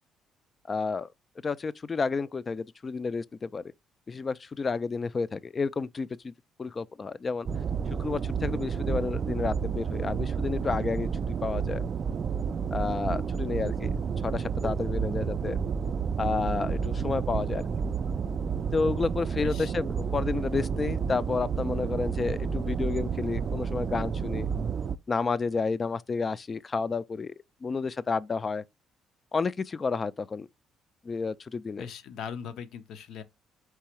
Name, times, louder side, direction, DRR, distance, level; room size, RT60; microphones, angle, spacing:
voice 1, 0.7-1.1 1.4-3.6 4.1-6.3 6.6-7.5 8.0-11.1 11.4-11.8 12.7-13.9 14.2-15.6 16.2-17.7 18.7-24.5 25.1-27.3 27.6-28.6 29.3-30.5 31.0-31.9, left 4 dB, 30° left, 0.3 m, -30 dB
sound 1, 7.5-25.0, right 6 dB, 45° right, 0.3 m, -30 dB
voice 2, 31.8-33.2, left 7 dB, 75° left, 0.7 m, -40 dB
4.6 x 3.3 x 3.0 m
cardioid pair, 100°, 0 cm